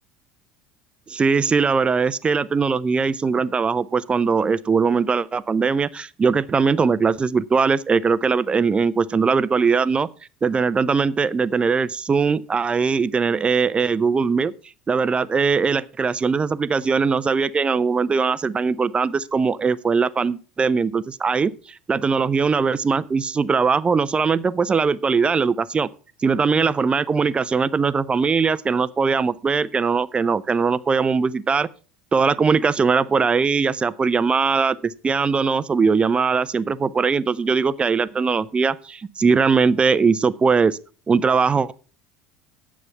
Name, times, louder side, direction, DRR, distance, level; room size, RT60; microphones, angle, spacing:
voice 1, 1.1-10.1 10.4-14.5 14.9-21.5 21.9-25.9 26.2-31.7 32.1-40.8 41.1-41.7, right 5 dB, 25° right, 0.6 m, -20 dB
9.5 x 7.2 x 5.7 m
hypercardioid pair, 75°, 5 cm